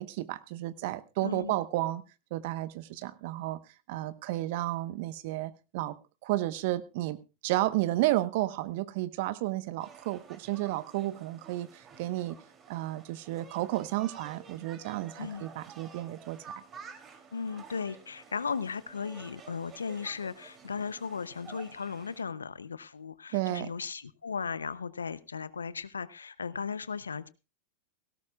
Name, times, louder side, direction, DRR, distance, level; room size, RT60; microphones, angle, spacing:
voice 1, 0.0-2.0 2.3-3.6 3.9-6.0 6.2-7.2 7.4-12.4 12.7-16.4 23.3-23.7, right 16 dB, 60° right, 14 dB, 1.1 m, -32 dB
voice 2, 1.2-1.6 15.2-15.5 17.3-27.3, left 5 dB, 85° left, 17 dB, 0.7 m, -36 dB
sound 1, 9.8-22.2, right 6 dB, 30° right, 3.0 m, -51 dB
17.5 x 17.0 x 2.4 m, 0.29 s
hypercardioid pair, 95°, 0 cm